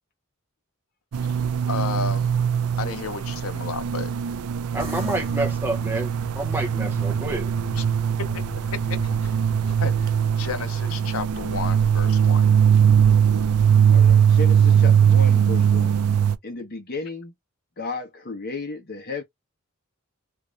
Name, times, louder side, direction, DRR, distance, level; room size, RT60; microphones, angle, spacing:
sound 1, 1.1-16.4, right 8 dB, 90° right, 0.4 m, -20 dB
voice 1, 1.7-2.3 2.8-4.1 7.8-7.9 8.2-8.4 9.2-12.5, left 5 dB, 70° left, 0.6 m, -33 dB
voice 2, 4.7-7.5, right 2 dB, 10° right, 0.7 m, -29 dB
sound 2, 4.8-15.4, equal, 25° right, 1.7 m, -39 dB
voice 3, 13.9-16.0 16.4-17.3 17.8-19.2, left 3 dB, 45° left, 1.1 m, -33 dB
3.1 x 2.9 x 2.4 m
head